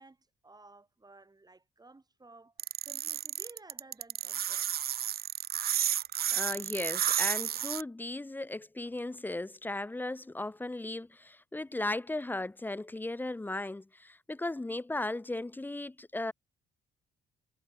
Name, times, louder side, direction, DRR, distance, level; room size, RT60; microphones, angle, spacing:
voice 1, 0.0-2.5 2.8-4.7, right 3 dB, 20° right, 4.9 m, -55 dB
sound 1, 2.6-7.8, right 11 dB, 50° right, 0.5 m, -31 dB
voice 2, 6.3-16.3, left 2 dB, 10° left, 0.4 m, -36 dB
cardioid pair, 90°, 20 cm